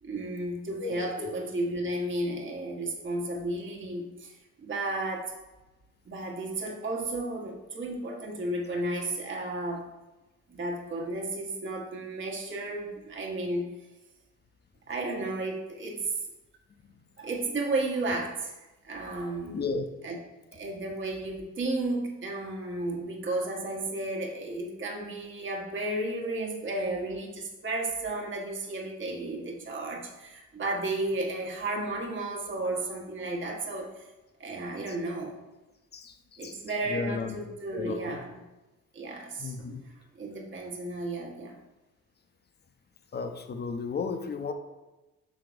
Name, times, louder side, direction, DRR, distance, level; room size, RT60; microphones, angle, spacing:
voice 1, 0.0-5.3 6.1-9.9 10.5-13.7 14.9-16.0 17.2-19.7 20.0-20.2 20.5-34.0 34.4-35.4 36.4-38.4 38.9-41.6, right 2 dB, 40° right, 0 dB, 1.4 m, -33 dB
voice 2, 0.8-1.3 19.5-19.9 35.9-36.2 36.4-36.6 36.9-37.3 37.7-38.2 39.4-39.8 43.1-44.5, left 4 dB, 35° left, 6 dB, 0.7 m, -34 dB
6.1 x 3.9 x 5.0 m, 1.1 s
cardioid pair, 90°, 30 cm